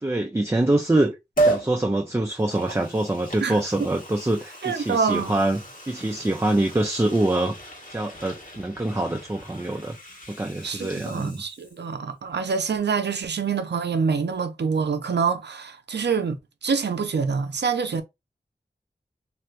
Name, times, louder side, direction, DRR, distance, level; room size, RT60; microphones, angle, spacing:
voice 1, 0.0-7.6 7.9-10.0 10.3-11.4, right 1 dB, 15° right, 0.5 m, -25 dB
Liquid, 1.4-1.7 2.3-11.9 12.2-12.3, right 2 dB, 55° left, 1.4 m, -33 dB
voice 2, 4.6-5.4 10.6-18.0, right 5 dB, 80° right, 0.5 m, -26 dB
3.2 x 2.7 x 2.4 m
wide cardioid pair, 45°, 17 cm